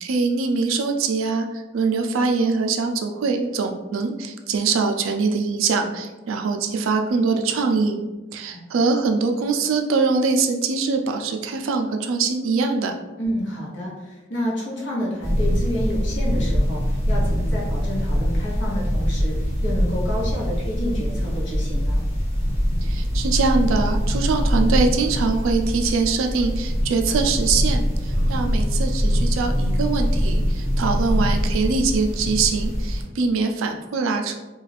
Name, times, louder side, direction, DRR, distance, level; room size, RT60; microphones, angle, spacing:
voice 1, 0.0-8.0 8.3-12.9 22.8-34.3, right 4 dB, 85° right, 4 dB, 0.4 m, -23 dB
voice 2, 13.2-22.0, equal, 65° left, -5 dB, 0.9 m, -29 dB
sound 1, 15.2-33.0, equal, 30° left, 0.8 m, -23 dB
2.4 x 2.3 x 3.2 m, 1.1 s
head